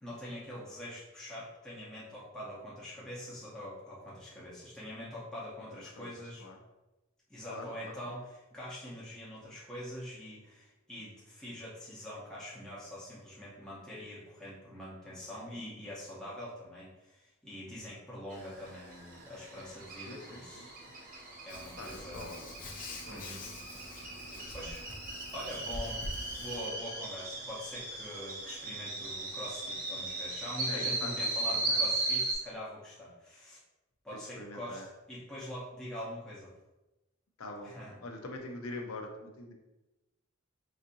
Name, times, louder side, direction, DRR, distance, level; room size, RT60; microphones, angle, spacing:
voice 1, 0.0-6.4 7.3-20.7 21.4-22.3 23.1-23.4 24.5-24.8 25.3-33.6 34.0-34.8 35.1-36.5 37.6-37.9, left 1 dB, 5° left, -8 dB, 0.8 m, -44 dB
voice 2, 5.7-6.6 7.5-8.2 20.0-20.9 21.8-23.6 30.7-31.8 34.1-34.9 37.4-39.5, left 2 dB, 85° left, 3 dB, 0.6 m, -45 dB
sound 1, 18.3-32.3, right 2 dB, 45° right, 0.8 m, -37 dB
Hands, 21.5-26.7, left 1 dB, 40° left, 0.5 m, -45 dB
4.1 x 2.6 x 2.6 m, 1.0 s
head